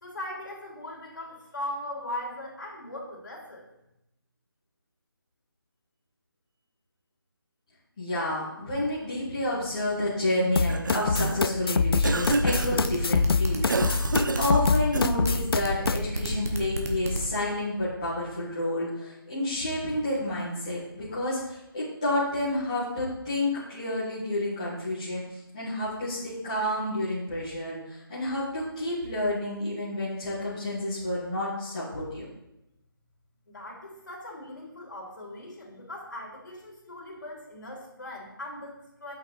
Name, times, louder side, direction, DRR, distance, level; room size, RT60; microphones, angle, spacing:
voice 1, 0.0-3.6 33.5-39.2, left 1 dB, 55° left, -3 dB, 3.1 m, -39 dB
voice 2, 8.0-32.3, left 1 dB, 15° left, -11 dB, 1.5 m, -30 dB
Cough, 10.5-11.5 12.0-12.9 13.7-15.4, right 3 dB, 55° right, 0.5 m, -29 dB
sound 1, 10.6-16.0, left 4 dB, 75° left, 0.4 m, -25 dB
sound 2, 11.9-17.2, right 2 dB, 40° right, 1.2 m, -30 dB
8.2 x 6.0 x 4.1 m, 0.86 s
figure-of-eight pair, 180°, 12 cm